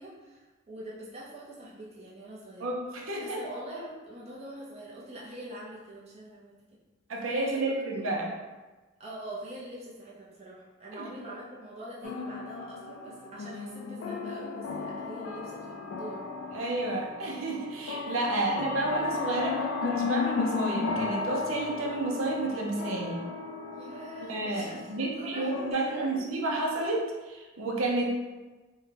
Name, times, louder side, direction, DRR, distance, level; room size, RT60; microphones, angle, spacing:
voice 1, 0.0-2.7 3.2-6.6 7.4-7.6 7.9-8.1 9.0-16.2 18.3-18.6 23.7-26.4, right 1 dB, 30° right, -6 dB, 0.6 m, -44 dB
voice 2, 2.6-3.4 7.1-8.3 10.9-11.1 16.5-23.2 24.3-28.1, right 2 dB, 80° right, -1 dB, 0.6 m, -31 dB
sound 1, 12.0-25.7, left 4 dB, 70° left, 0.4 m, -35 dB
3.6 x 2.2 x 3.2 m, 1.2 s
head